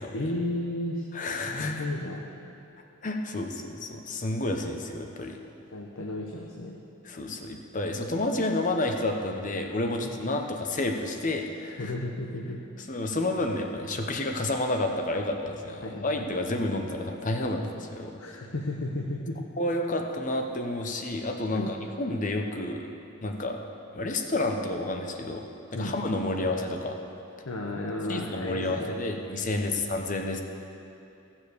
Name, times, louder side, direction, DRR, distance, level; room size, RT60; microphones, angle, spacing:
voice 1, 0.1-1.1 1.5-2.2 5.7-6.8 10.0-10.1 11.8-12.6 15.8-16.2 18.2-19.4 21.5-21.7 25.7-25.9 27.4-28.9 29.6-29.8, left 1 dB, 70° left, 0 dB, 1.0 m, -33 dB
voice 2, 1.1-1.8 3.0-5.4 7.0-11.9 12.8-18.2 19.6-22.9 23.2-23.6 23.9-25.4 25.7-27.0 28.1-30.4, left 2 dB, 35° left, 3 dB, 0.9 m, -30 dB
15.0 x 7.2 x 6.8 m, 2.7 s
head